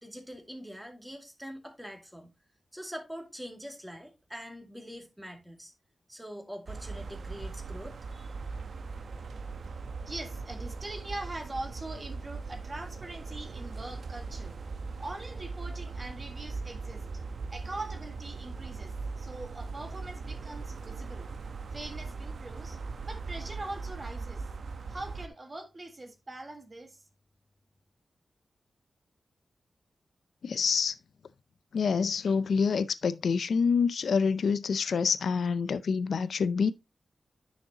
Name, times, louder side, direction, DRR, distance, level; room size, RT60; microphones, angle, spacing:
voice 1, 0.0-2.3 2.7-5.7 6.1-8.4, equal, 5° right, 2.2 m, -44 dB
sound 1, 6.7-25.3, right 4 dB, 70° right, 0.9 m, -39 dB
voice 2, 10.1-14.5 15.0-17.0 17.5-21.3 21.7-22.8 23.0-24.4 24.9-27.0, right 2 dB, 35° right, 1.7 m, -42 dB
voice 3, 30.4-31.0 31.7-36.7, left 5 dB, 85° left, 0.4 m, -27 dB
10.0 x 6.4 x 2.8 m
wide cardioid pair, 105°, 0 cm